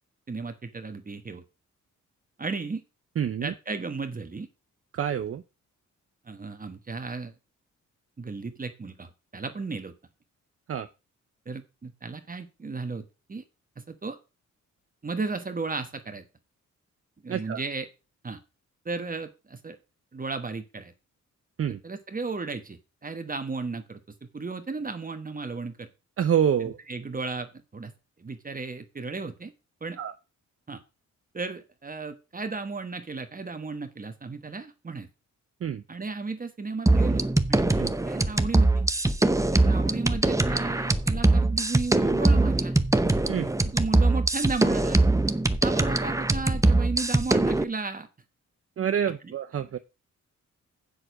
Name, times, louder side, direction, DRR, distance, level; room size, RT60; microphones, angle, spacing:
voice 1, 0.3-1.4 2.4-2.8 3.4-4.5 6.2-7.3 8.2-9.9 11.4-13.4 13.8-14.2 15.0-16.2 17.2-17.8 18.2-18.4 18.8-19.8 20.1-20.9 21.8-25.9 26.6-27.9 28.2-29.5 29.8-30.0 30.7-30.8 31.3-35.1 35.9-37.6 38.1-38.8 39.5-42.8 43.6-45.1 45.6-48.1 49.2-49.3, right 4 dB, 30° right, 8 dB, 1.3 m, -34 dB
voice 2, 3.2-3.5 4.9-5.4 10.7-10.9 17.3-17.6 21.6-21.8 26.2-26.8 30.0-30.1 35.6-35.8 37.8-37.9 43.3-43.5 48.8-49.8, right 8 dB, 45° right, 9 dB, 0.7 m, -27 dB
sound 1, 36.9-47.6, right 2 dB, 10° right, 0.7 m, -22 dB
7.6 x 6.5 x 5.9 m, 0.29 s
cardioid pair, 90°, 31 cm